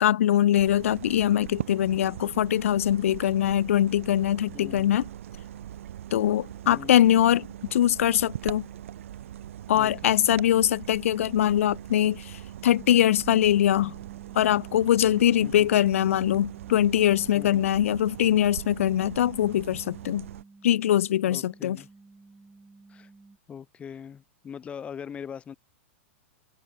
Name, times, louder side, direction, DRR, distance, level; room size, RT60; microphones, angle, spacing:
voice 1, 0.0-5.0 6.1-8.6 9.7-13.9 14.3-20.2 20.6-21.8, left 11 dB, 85° left, 0.7 m, -22 dB
sound 1, 0.5-20.4, right 11 dB, 80° right, 3.4 m, -41 dB
voice 2, 4.5-4.9 6.6-7.0 9.7-10.1 15.4-15.7 17.3-17.6 21.2-21.9 22.9-23.1 23.5-25.5, left 7 dB, 15° left, 7.4 m, -41 dB
sound 2, 12.8-23.4, right 3 dB, 5° right, 5.4 m, -53 dB
open air
supercardioid pair, 155°, 7 cm